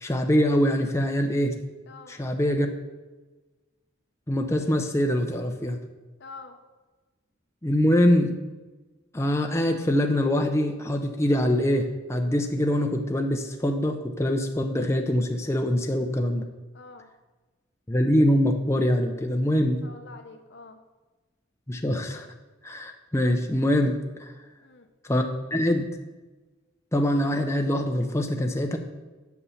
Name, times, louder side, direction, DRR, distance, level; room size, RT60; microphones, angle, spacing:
voice 1, 0.0-1.6 2.1-2.7 4.3-5.8 7.6-8.4 9.1-16.5 17.9-19.9 21.7-22.3 22.6-24.4 25.0-25.9 26.9-28.8, equal, 15° left, 3 dB, 0.5 m, -24 dB
voice 2, 1.9-2.2 6.2-6.6 16.7-17.1 19.8-20.8 24.6-24.9, left 3 dB, 55° left, 6 dB, 0.7 m, -45 dB
8.3 x 5.5 x 7.0 m, 1.2 s
head